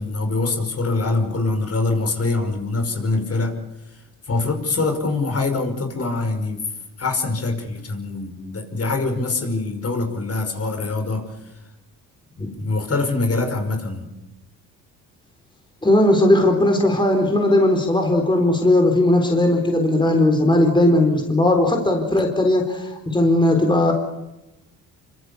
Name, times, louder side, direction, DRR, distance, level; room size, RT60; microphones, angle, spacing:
voice 1, 0.0-3.6 3.9-6.7 7.0-11.5 12.4-14.1 22.1-22.2, left 3 dB, 40° left, 5 dB, 5.4 m, -24 dB
voice 2, 15.8-23.9, left 1 dB, 10° left, 3 dB, 4.2 m, -17 dB
26.5 x 25.0 x 7.0 m, 0.95 s
cardioid pair, 80°, 37 cm